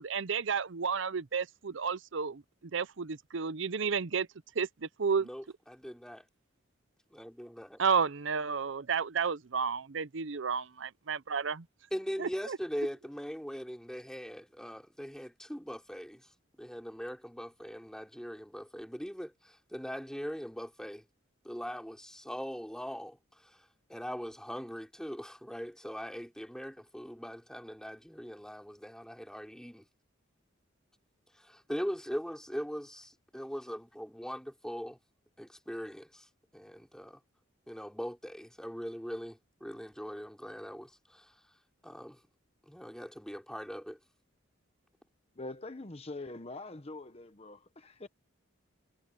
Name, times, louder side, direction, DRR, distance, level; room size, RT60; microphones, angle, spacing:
voice 1, 0.0-2.4 2.7-4.3 4.6-5.3 7.8-11.6 12.2-12.6, right 6 dB, 65° right, 0.7 m, -32 dB
voice 2, 5.2-6.2 7.1-7.8 11.9-16.3 16.6-21.1 21.4-29.9 31.3-35.0 35.4-36.3 36.5-37.2 37.7-41.4 41.8-42.2 42.7-44.0, equal, 5° left, 4.2 m, -41 dB
voice 3, 45.4-48.1, left 2 dB, 30° left, 1.0 m, -44 dB
head